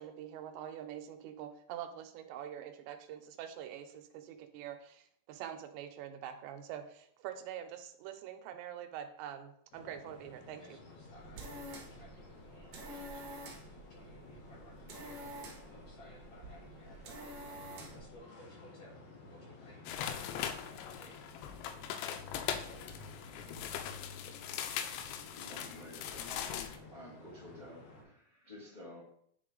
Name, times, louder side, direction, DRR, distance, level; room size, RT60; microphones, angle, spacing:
voice 1, 0.0-10.8, right 10 dB, 85° right, 7 dB, 2.8 m, -45 dB
sound 1, 9.7-28.0, left 3 dB, 70° left, 3.3 m, -54 dB
voice 2, 10.6-18.9 19.3-22.9, equal, 40° left, -7 dB, 3.8 m, -60 dB
sound 2, 11.0-18.1, right 1 dB, 65° right, 1.5 m, -48 dB
sound 3, 19.9-26.8, left 9 dB, 90° left, 2.9 m, -40 dB
voice 3, 25.0-29.0, left 1 dB, 25° left, -6 dB, 0.9 m, -52 dB
10.5 x 3.9 x 3.8 m, 0.66 s
omnidirectional pair, 5.1 m